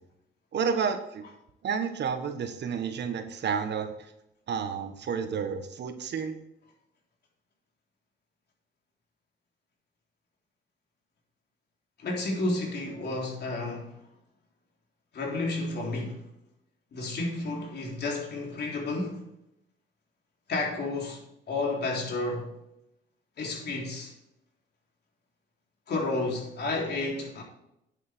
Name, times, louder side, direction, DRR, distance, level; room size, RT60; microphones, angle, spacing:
voice 1, 0.5-1.2 1.6-3.9 4.5-6.4, right 6 dB, 60° right, 1.4 m, -30 dB
voice 2, 12.0-14.0 15.1-16.2 16.9-19.2 20.5-22.5 23.4-24.1 25.9-27.4, left 2 dB, 55° left, 3.5 m, -31 dB
9.3 x 8.1 x 4.5 m
cardioid pair, 90°, 20 cm